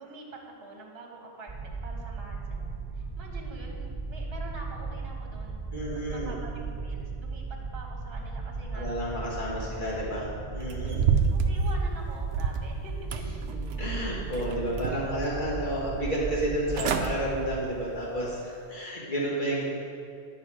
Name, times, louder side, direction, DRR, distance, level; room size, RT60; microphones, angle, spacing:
voice 1, 0.0-8.9 9.6-9.7 10.0-10.2 10.8-11.0 11.3-13.1 15.1-15.2, right 2 dB, 55° right, 0 dB, 1.4 m, -46 dB
sound 1, 1.5-17.6, right 3 dB, ahead, 1.6 m, -36 dB
voice 2, 5.7-6.3 8.7-11.1 13.5-19.6, right 1 dB, 40° left, -6 dB, 2.0 m, -31 dB
sound 2, 10.7-12.7 13.1-13.9 14.3-15.2 15.6-15.7 16.4-16.5 16.7-17.1 17.5-17.8 18.3-18.4, right 6 dB, 75° right, 0.9 m, -28 dB
10.5 x 5.5 x 4.9 m, 2.5 s
omnidirectional pair, 1.3 m